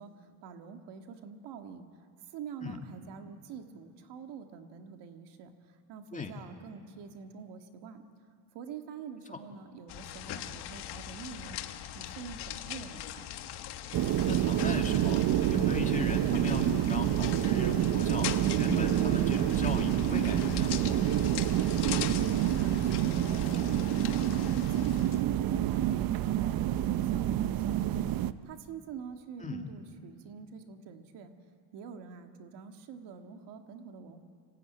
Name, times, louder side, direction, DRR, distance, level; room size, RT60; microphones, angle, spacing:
voice 1, 0.0-8.0 8.5-11.6 11.9-13.2 21.6-31.3 31.7-34.2, right 6 dB, 80° right, 6 dB, 1.9 m, -46 dB
sound 1, 9.9-25.2, left 11 dB, 70° left, 1.4 m, -41 dB
sound 2, 13.9-28.3, right 12 dB, 60° right, 0.8 m, -28 dB
voice 2, 14.3-15.2 15.5-20.7 29.4-29.6, left 4 dB, 20° left, 3 dB, 2.2 m, -37 dB
26.0 x 16.5 x 9.3 m, 2.2 s
cardioid pair, 115°, 40 cm